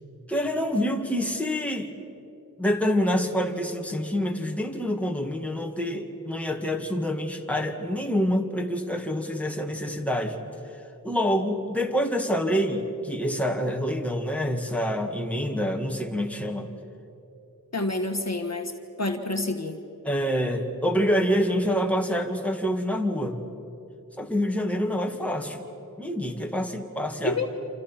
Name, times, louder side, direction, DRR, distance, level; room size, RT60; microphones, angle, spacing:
voice 1, 0.3-1.9 2.6-10.4 11.0-16.7 20.0-23.4 24.2-25.6 26.0-27.4, equal, 5° left, 2 dB, 2.2 m, -26 dB
voice 2, 17.7-18.7 19.0-19.8 27.2-27.5, left 2 dB, 45° left, 4 dB, 1.6 m, -28 dB
28.0 x 27.5 x 5.9 m, 2.8 s
wide cardioid pair, 60°, 36 cm